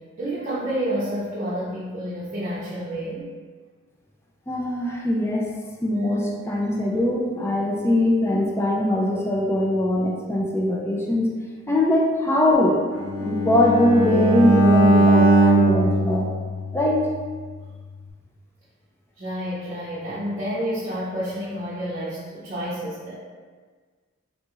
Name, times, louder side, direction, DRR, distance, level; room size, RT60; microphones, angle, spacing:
voice 1, 0.2-3.3 19.2-23.2, equal, 40° right, -9 dB, 0.6 m, -29 dB
voice 2, 4.5-5.5 5.8-11.3 11.7-12.8 13.2-16.3 16.7-17.1, left 1 dB, 10° left, -3 dB, 0.4 m, -21 dB
Bowed string instrument, 13.0-17.1, right 1 dB, 85° left, 1.1 m, -19 dB
3.6 x 3.0 x 2.4 m, 1.5 s
head